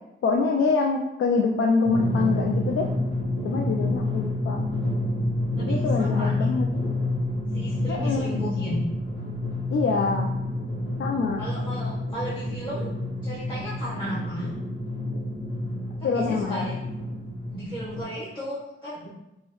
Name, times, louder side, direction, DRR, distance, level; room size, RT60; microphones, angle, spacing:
voice 1, 0.2-2.9 3.4-4.6 5.7-6.7 7.9-8.3 9.7-10.3 11.0-11.4 16.0-16.7, left 4 dB, 80° left, 1 dB, 0.4 m, -25 dB
Drum, 1.8-18.0, left 1 dB, 60° left, 1.4 m, -28 dB
voice 2, 5.6-6.5 7.5-8.8 11.4-12.9 13.2-14.5 16.1-16.7 17.5-19.1, equal, 20° left, -9 dB, 0.9 m, -35 dB
5.3 x 2.2 x 3.0 m, 0.89 s
wide cardioid pair, 150°, 21 cm